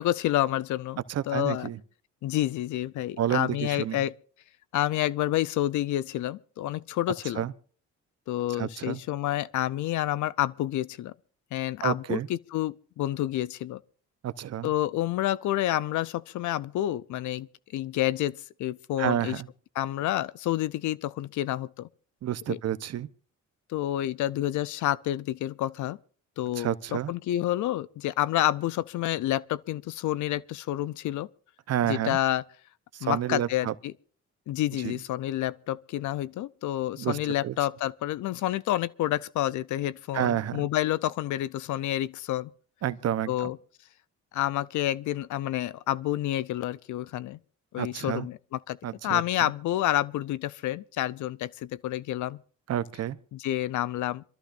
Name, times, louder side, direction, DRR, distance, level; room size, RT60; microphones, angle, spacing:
voice 1, 0.0-1.0 1.3-1.7 2.2-4.1 4.7-7.4 8.3-11.1 11.5-13.8 14.6-19.4 19.8-21.9 22.5-22.6 23.7-26.0 26.4-31.3 31.9-32.4 33.0-33.9 34.5-42.5 43.3-43.6 44.3-47.4 47.7-48.8 49.0-52.4 53.3-54.2, left 14 dB, 75° left, 0.6 m, -29 dB
voice 2, 1.1-1.8 3.2-4.0 7.3-7.5 8.5-9.0 11.8-12.3 14.2-14.7 19.0-19.5 22.2-23.1 26.6-27.1 31.7-32.2 32.9-33.7 34.7-35.0 37.0-37.5 40.1-40.7 42.8-43.5 47.8-48.3 48.8-49.5 52.7-53.2, right 11 dB, 55° right, 0.8 m, -30 dB
26.5 x 13.5 x 2.5 m
cardioid pair, 90°, 30 cm